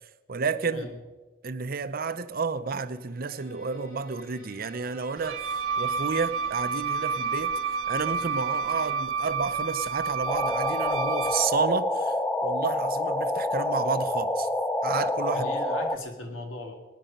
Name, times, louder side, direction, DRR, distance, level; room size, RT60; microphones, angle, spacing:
voice 1, 0.3-0.9 1.4-7.5 7.9-12.2 12.4-14.5 14.8-15.5, right 5 dB, 50° right, 0.7 m, -30 dB
Bowed string instrument, 2.8-9.3, equal, 50° left, 5.2 m, -50 dB
Wind instrument woodwind instrument, 5.2-11.5, right 5 dB, 80° right, 0.9 m, -30 dB
sound 1, 10.3-16.0, left 1 dB, 10° left, 0.5 m, -27 dB
voice 2, 15.3-16.7, left 2 dB, 80° left, 2.3 m, -37 dB
18.5 x 10.5 x 5.3 m
head